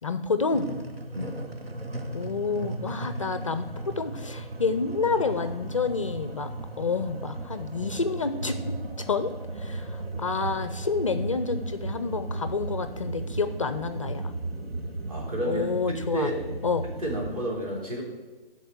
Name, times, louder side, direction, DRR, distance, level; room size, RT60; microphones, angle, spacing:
voice 1, 0.0-0.7 2.1-6.5 6.8-8.6 9.0-9.3 9.6-14.3 15.4-16.3 16.6-16.9, left 4 dB, 35° left, 10 dB, 0.4 m, -29 dB
sound 1, 0.5-17.4, right 2 dB, 85° right, 1.4 m, -36 dB
voice 2, 15.1-16.4 16.8-18.0, right 1 dB, 35° right, -2 dB, 3.0 m, -31 dB
12.0 x 4.3 x 8.0 m, 1.2 s
hypercardioid pair, 155°, 29 cm